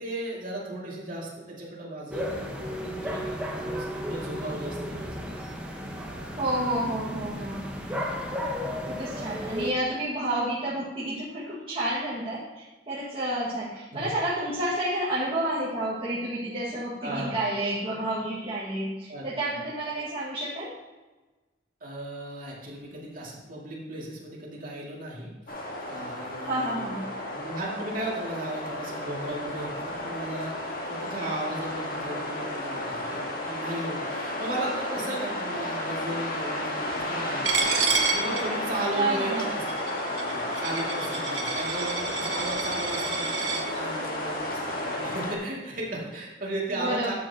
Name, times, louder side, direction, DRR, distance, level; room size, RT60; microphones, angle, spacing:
voice 1, 0.0-2.5 2.8-5.2 13.9-14.1 17.0-17.4 19.1-19.6 21.8-25.3 25.9-39.6 40.3-47.1, right 1 dB, 50° right, -4 dB, 2.3 m, -36 dB
sound 1, 2.1-9.7, equal, 5° right, 1.2 m, -34 dB
voice 2, 6.4-7.7 8.9-20.7 26.4-27.1 38.9-39.5 46.7-47.1, right 1 dB, 30° right, -8 dB, 1.8 m, -30 dB
sound 2, 25.5-45.4, left 1 dB, 50° left, 1.7 m, -32 dB
Coin (dropping), 37.4-43.6, right 5 dB, 90° right, 1.4 m, -30 dB
12.0 x 7.7 x 2.9 m, 1.2 s
head